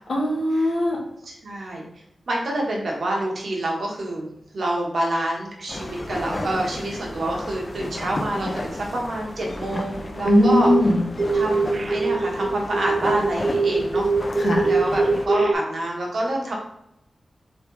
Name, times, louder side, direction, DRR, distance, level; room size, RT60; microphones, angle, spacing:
voice 1, 0.1-1.0 10.2-11.1 14.4-14.7, left 1 dB, 55° left, -2 dB, 1.2 m, -20 dB
voice 2, 1.2-1.8 2.3-10.7 11.3-14.1 14.6-16.5, right 1 dB, 55° right, -1 dB, 1.1 m, -27 dB
sound 1, 5.7-15.3, left 1 dB, 25° left, 0.4 m, -33 dB
sound 2, 10.2-10.8 11.2-15.5, right 3 dB, 35° right, 0.4 m, -21 dB
3.6 x 3.3 x 4.6 m, 0.78 s
wide cardioid pair, 180°, 0 cm